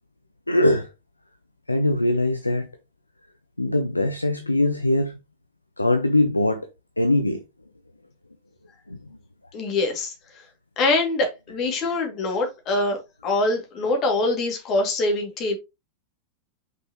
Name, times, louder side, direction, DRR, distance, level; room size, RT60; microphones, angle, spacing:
voice 1, 0.5-0.9 1.7-2.7 3.6-5.2 5.8-6.7 7.0-7.4 8.9-9.0, left 1 dB, 85° left, 0.6 m, -21 dB
voice 2, 9.5-10.5 10.8-13.0 13.2-15.6, left 2 dB, 35° left, 2.5 m, -24 dB
5.9 x 5.3 x 3.1 m
figure-of-eight pair, 90°, 0 cm